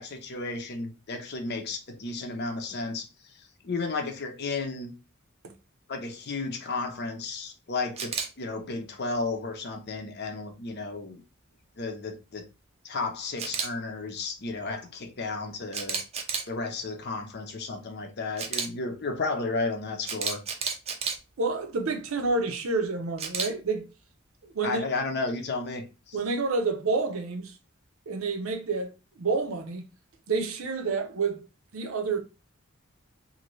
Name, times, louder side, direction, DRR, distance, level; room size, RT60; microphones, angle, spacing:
voice 1, 0.0-3.0 3.3-4.9 5.9-11.2 11.8-12.5 12.8-16.0 16.5-20.4 24.6-26.2, left 3 dB, 50° left, 0.7 m, -33 dB
Camera, 8.0-8.3 13.4-13.7 15.7-16.5 18.4-18.7 20.0-21.2 23.2-23.5, right 6 dB, 30° right, 0.5 m, -30 dB
voice 2, 21.4-23.9 24.4-24.8 26.1-27.5 28.1-28.9 29.2-29.9 30.3-31.4 31.7-32.2, right 4 dB, 85° right, 0.7 m, -29 dB
2.7 x 2.7 x 3.0 m
head